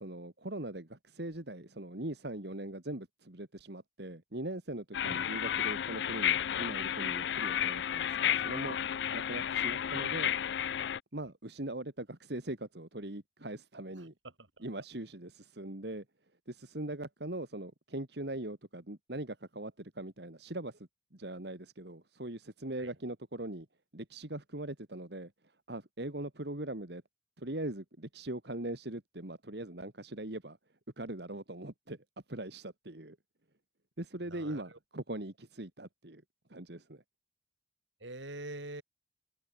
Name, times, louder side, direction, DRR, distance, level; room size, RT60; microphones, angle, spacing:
voice 1, 0.0-8.8 9.1-10.3 11.1-14.1 14.6-16.0 16.5-23.7 23.9-25.3 25.7-27.0 27.4-30.6 31.0-32.0 32.3-33.2 34.0-36.2 36.5-37.0, right 1 dB, 60° right, 2.2 m, -41 dB
sound 1, 4.9-11.0, left 9 dB, 65° left, 0.4 m, -32 dB
voice 2, 14.2-14.6 22.8-22.9 34.3-34.6 38.0-38.8, right 2 dB, 80° right, 4.3 m, -44 dB
open air
head